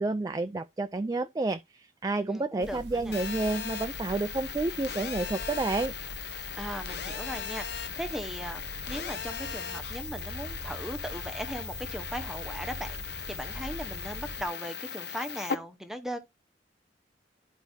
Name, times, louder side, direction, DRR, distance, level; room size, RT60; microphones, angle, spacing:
voice 1, 0.0-5.9, right 2 dB, 20° right, 0.4 m, -30 dB
voice 2, 2.3-3.2 6.5-8.6 8.9-16.2, equal, ahead, 0.9 m, -38 dB
sound 1, 2.6-14.5, right 2 dB, 75° right, 1.1 m, -43 dB
Telephone, 3.1-15.5, left 7 dB, 65° left, 0.9 m, -38 dB
12.5 x 4.6 x 2.7 m
head